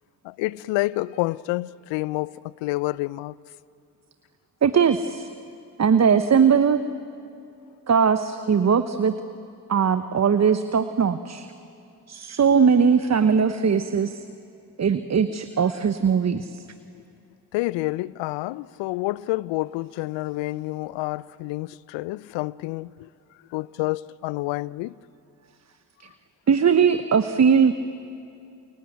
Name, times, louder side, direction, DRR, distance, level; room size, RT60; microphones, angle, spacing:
voice 1, 0.2-3.3 17.5-23.1 23.5-24.9, left 19 dB, 70° left, 0.6 m, -28 dB
voice 2, 4.6-5.3 5.8-6.8 7.9-9.1 9.7-11.5 12.1-14.2 14.8-16.6 26.5-27.7, right 6 dB, 35° right, 1.1 m, -20 dB
29.0 x 23.0 x 8.1 m
hypercardioid pair, 40°, 46 cm